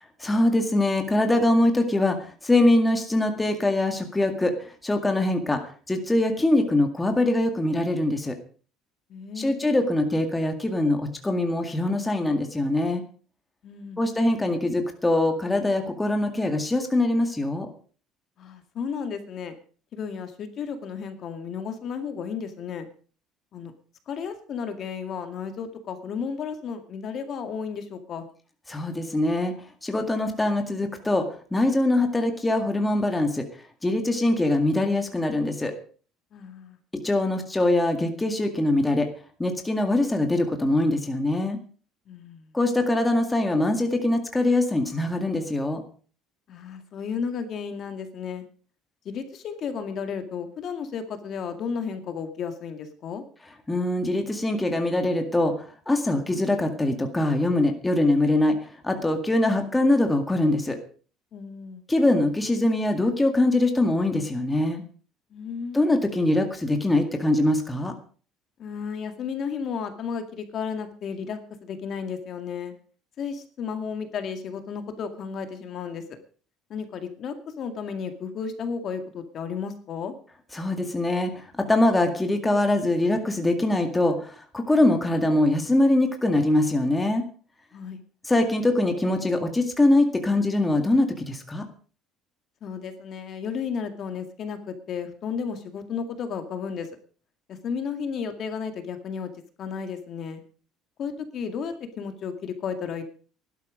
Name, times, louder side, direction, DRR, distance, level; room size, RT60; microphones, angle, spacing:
voice 1, 0.2-2.2 2.4-4.5 4.8-5.6 5.9-8.4 9.4-13.0 14.0-17.7 28.7-29.5 29.8-33.4 33.8-35.7 37.0-39.1 39.4-41.6 42.5-45.8 53.7-55.5 55.9-58.6 58.8-60.8 61.9-64.8 65.7-67.9 80.5-87.2 88.3-91.7, left 1 dB, 10° left, 5 dB, 2.0 m, -23 dB
voice 2, 9.1-9.7 13.6-14.0 18.4-19.5 19.9-22.9 23.5-23.7 24.1-28.3 36.3-36.8 42.1-42.5 46.5-48.4 49.1-53.2 61.3-61.8 65.3-65.8 68.6-72.7 73.2-76.2 76.7-80.1 87.7-88.0 92.6-96.9 97.5-99.3 99.6-100.4 101.0-103.0, left 6 dB, 40° left, 8 dB, 2.1 m, -33 dB
18.0 x 12.0 x 5.1 m, 0.42 s
cardioid pair, 150°, 0 cm